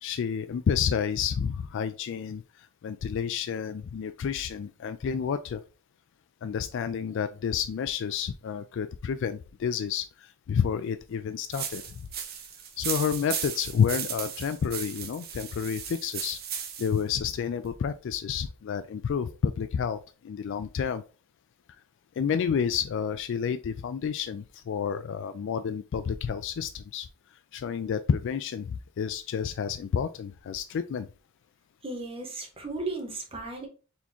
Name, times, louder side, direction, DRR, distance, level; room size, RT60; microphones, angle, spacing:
voice 1, 0.0-2.4 2.8-5.6 6.4-11.8 12.8-16.4 16.8-20.0 20.2-21.0 22.2-27.1 27.5-31.1, left 7 dB, 60° left, 11 dB, 0.3 m, -30 dB
sound 1, 11.5-17.0, right 8 dB, 50° right, 0.8 m, -36 dB
voice 2, 31.8-33.7, right 2 dB, 30° right, 1 dB, 1.3 m, -35 dB
4.2 x 3.5 x 2.9 m, 0.34 s
head